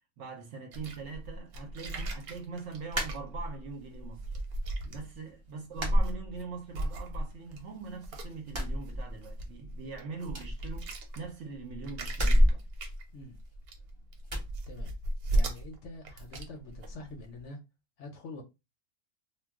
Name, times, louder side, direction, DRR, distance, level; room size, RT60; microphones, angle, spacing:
voice 1, 0.2-4.3 4.9-12.6, right 5 dB, 65° right, 0.8 m, -42 dB
sound 1, 0.7-5.5 5.9-6.4 6.7-17.4, right 1 dB, 90° right, 1.2 m, -37 dB
sound 2, 2.9-3.8 4.2-4.9 5.1-5.3 5.7-6.9 7.2-8.0 8.4-9.6 9.8-9.9 10.3-11.4 12.1-13.8 14.3-14.5, equal, 40° right, 0.4 m, -29 dB
voice 2, 15.3-17.6 18.0-18.4, left 2 dB, 65° left, 0.8 m, -45 dB
2.3 x 2.2 x 3.4 m
omnidirectional pair, 1.5 m